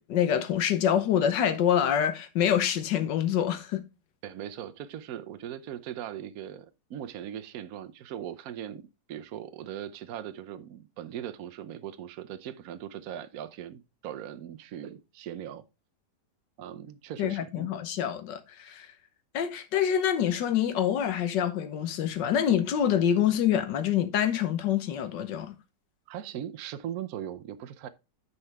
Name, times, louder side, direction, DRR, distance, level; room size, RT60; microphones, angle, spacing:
voice 1, 0.0-3.8 17.2-18.9 19.3-25.5, left 9 dB, 80° left, 1.6 m, -26 dB
voice 2, 4.2-8.8 9.1-15.6 16.6-17.7 26.1-27.9, right 10 dB, 65° right, 1.0 m, -39 dB
9.6 x 5.4 x 3.4 m
omnidirectional pair, 1.9 m